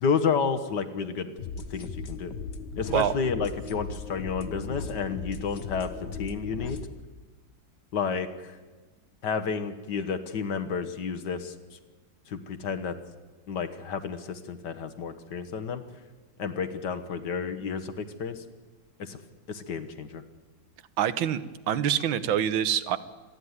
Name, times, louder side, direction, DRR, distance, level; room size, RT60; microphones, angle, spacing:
voice 1, 0.0-2.3 2.8-5.9 6.2-6.8 7.9-8.5 9.2-11.5 12.3-12.9 13.5-15.8 16.4-18.4 19.0-19.2 19.5-20.2, left 5 dB, 65° left, 9 dB, 1.8 m, -31 dB
sound 1, 1.4-6.9, left 5 dB, 45° left, 1.1 m, -37 dB
voice 2, 21.0-23.0, right 10 dB, 85° right, 14 dB, 1.7 m, -26 dB
26.5 x 11.0 x 9.7 m, 1.3 s
omnidirectional pair, 2.1 m